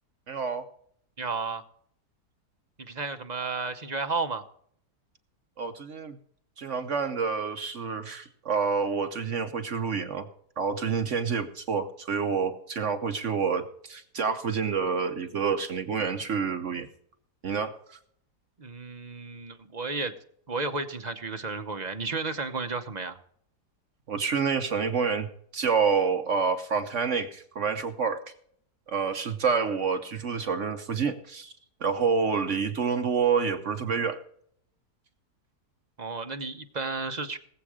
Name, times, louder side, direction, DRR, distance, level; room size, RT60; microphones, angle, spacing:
voice 1, 0.3-0.6 5.6-6.2 6.6-10.3 10.6-16.9 17.4-18.0 24.1-28.2 28.9-31.5 31.8-34.2, right 5 dB, 55° right, 8 dB, 1.1 m, -28 dB
voice 2, 1.2-1.6 2.8-4.4 18.6-20.1 20.5-23.2 36.0-37.4, right 3 dB, 35° right, 7 dB, 0.9 m, -32 dB
19.0 x 7.7 x 4.9 m, 0.65 s
omnidirectional pair, 1.7 m